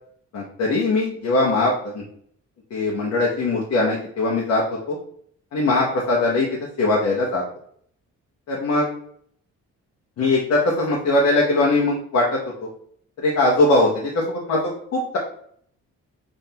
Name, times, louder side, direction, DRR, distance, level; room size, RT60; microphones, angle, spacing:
voice 1, 0.3-2.0 2.7-5.0 5.5-6.5 6.8-7.4 8.5-8.9 10.2-12.7 13.2-15.2, left 2 dB, 60° left, -3 dB, 0.9 m, -21 dB
5.5 x 2.7 x 2.8 m, 0.64 s
cardioid pair, 90°, 30 cm